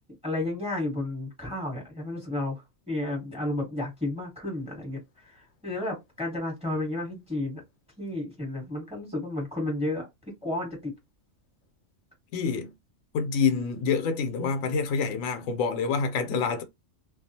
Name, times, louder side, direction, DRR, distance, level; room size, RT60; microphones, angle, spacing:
voice 1, 0.2-7.6 8.0-10.1 10.4-10.9, left 2 dB, 5° right, 1.1 m, -32 dB
voice 2, 12.3-12.7 13.1-16.6, left 5 dB, 85° left, 1.0 m, -27 dB
2.3 x 2.3 x 2.7 m
omnidirectional pair, 1.4 m